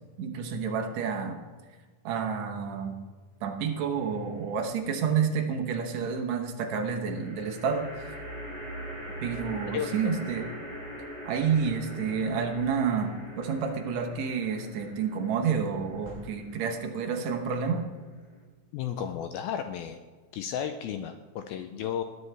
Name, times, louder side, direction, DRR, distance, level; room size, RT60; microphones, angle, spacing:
voice 1, 0.2-1.4 2.0-2.9 3.4-8.1 9.2-10.5 11.2-17.8, right 6 dB, 75° right, 3 dB, 1.6 m, -29 dB
sound 1, 3.9-4.6 7.1-18.4, equal, 30° left, 3.3 m, -43 dB
voice 2, 9.7-10.1 18.7-20.0 20.3-22.0, left 9 dB, 85° left, 8 dB, 2.2 m, -33 dB
sound 2, 13.0-14.0 15.7-16.9, right 1 dB, 25° right, 4.1 m, -52 dB
20.0 x 9.6 x 3.4 m, 1.4 s
omnidirectional pair, 4.8 m